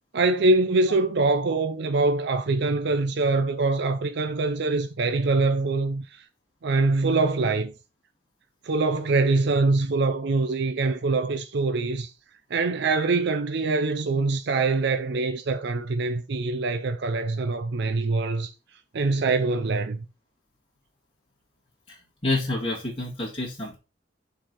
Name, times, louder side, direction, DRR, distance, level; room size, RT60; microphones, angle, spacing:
voice 1, 0.1-6.2 6.6-7.7 8.6-12.1 12.5-18.5 18.9-20.1, right 3 dB, 65° right, 0.5 m, -24 dB
voice 2, 21.9-23.8, left 2 dB, 30° left, 2.0 m, -29 dB
6.4 x 4.0 x 4.5 m
head